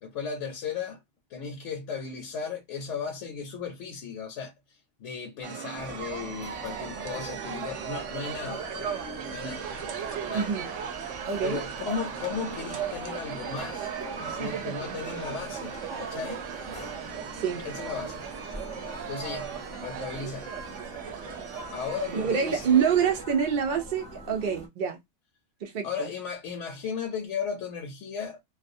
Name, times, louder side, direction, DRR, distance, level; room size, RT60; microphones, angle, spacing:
voice 1, 0.0-1.0 1.3-9.0 9.3-9.7 10.2-10.6 11.4-13.9 14.3-16.4 17.6-18.2 19.1-20.5 21.7-22.7 25.8-28.4, left 6 dB, 75° left, 0.9 m, -36 dB
sound 1, 5.4-23.2, right 8 dB, 75° right, 0.9 m, -37 dB
sound 2, 5.7-24.7, equal, 5° left, 0.5 m, -44 dB
voice 2, 10.3-10.7 11.3-11.6 17.4-17.6 22.1-25.0 25.6-26.1, right 7 dB, 60° right, 0.6 m, -26 dB
2.3 x 2.2 x 2.6 m
omnidirectional pair, 1.3 m